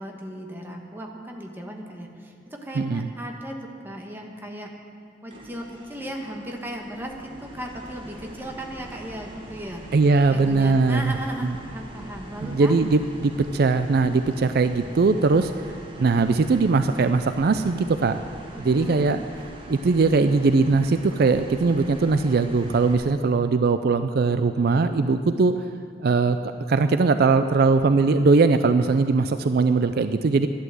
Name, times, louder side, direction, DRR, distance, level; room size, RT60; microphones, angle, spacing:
voice 1, 0.0-4.7 5.2-9.8 10.3-12.7 18.5-19.2, right 1 dB, 10° right, 1 dB, 1.4 m, -36 dB
voice 2, 2.8-3.1 9.9-11.1 12.4-15.5 16.0-18.2 18.6-19.2 19.7-25.5 26.0-30.5, right 4 dB, 55° right, 10 dB, 0.4 m, -20 dB
sound 1, 5.3-22.9, right 1 dB, 30° right, 1.7 m, -42 dB
11.5 x 11.0 x 7.8 m, 2.3 s
head